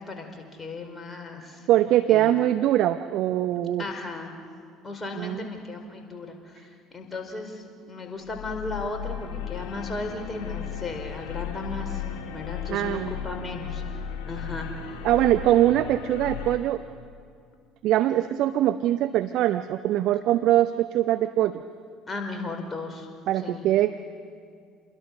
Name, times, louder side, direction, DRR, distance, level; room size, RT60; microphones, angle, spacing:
voice 1, 0.0-1.7 2.1-2.3 3.8-4.3 4.8-12.0 12.3-13.8 14.3-15.0 22.1-23.1 23.3-23.7, left 3 dB, 20° left, 4 dB, 4.7 m, -36 dB
voice 2, 1.7-3.8 5.2-5.5 12.7-13.1 15.0-16.8 17.8-21.6 23.3-24.0, right 13 dB, 55° right, 10 dB, 0.7 m, -22 dB
sound 1, 8.2-16.6, left 8 dB, 55° left, 3.5 m, -35 dB
28.5 x 21.5 x 6.6 m, 2.3 s
figure-of-eight pair, 55°, 0 cm